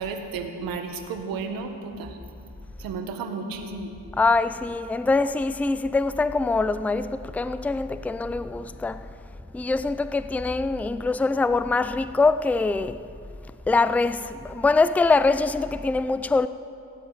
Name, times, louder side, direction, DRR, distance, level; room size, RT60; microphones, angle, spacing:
voice 1, 0.0-2.2 2.8-3.9, right 4 dB, 85° right, 1.6 m, -33 dB
voice 2, 4.2-9.1 9.5-13.0 13.7-16.5, left 3 dB, 5° left, 0.4 m, -23 dB
16.0 x 8.0 x 9.7 m
cardioid pair, 85°, 34 cm